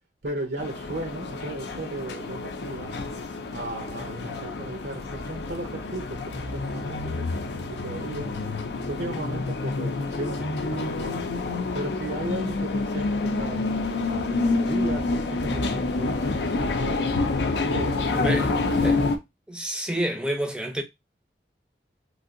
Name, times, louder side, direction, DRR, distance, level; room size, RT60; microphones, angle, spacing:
voice 1, 0.2-2.9 3.5-7.3 7.8-8.3 8.9-11.2 11.7-13.6 14.3-17.1 17.5-18.8, right 1 dB, 70° right, 0.7 m, -35 dB
sound 1, 0.6-19.2, left 3 dB, 75° left, 0.5 m, -28 dB
voice 2, 18.1-18.5 18.8-19.1 19.5-20.8, right 1 dB, 5° right, 0.5 m, -29 dB
3.2 x 2.7 x 2.5 m
head